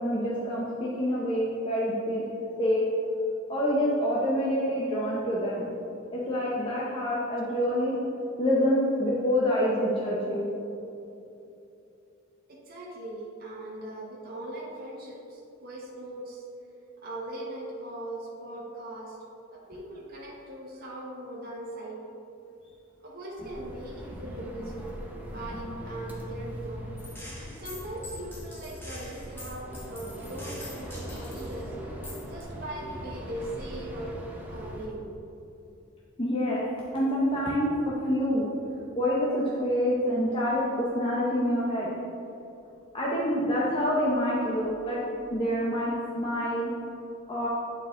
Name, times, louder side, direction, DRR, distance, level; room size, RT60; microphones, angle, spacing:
voice 1, 0.0-2.2 2.6-2.8 3.5-5.7 6.1-8.0 8.4-10.5 36.2-36.6 36.9-37.7 38.0-38.5 39.0-41.9 42.9-45.0 45.3-46.7 47.3-47.5, equal, 25° left, -6 dB, 0.7 m, -26 dB
voice 2, 12.5-16.4 17.0-19.2 19.5-22.0 23.0-25.0 25.2-26.8 27.5-31.7 32.2-34.2 34.5-35.1, right 1 dB, 45° right, -5 dB, 1.1 m, -40 dB
sound 1, 23.4-34.9, equal, 10° right, 0.7 m, -40 dB
Gunshot gunfire, 27.0-31.6 32.0-32.4, left 1 dB, 10° left, 1.2 m, -45 dB
8.6 x 4.4 x 3.7 m, 2.8 s
head